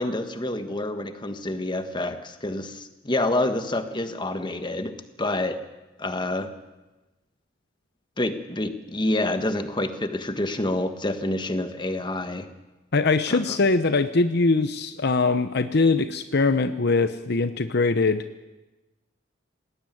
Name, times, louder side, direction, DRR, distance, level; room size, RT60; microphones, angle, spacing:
voice 1, 0.0-5.6 6.0-6.5 8.2-12.5 13.3-13.6, left 1 dB, 25° left, 8 dB, 1.5 m, -28 dB
voice 2, 12.9-18.2, left 3 dB, 55° left, 11 dB, 0.8 m, -22 dB
19.5 x 18.0 x 9.3 m, 1.1 s
head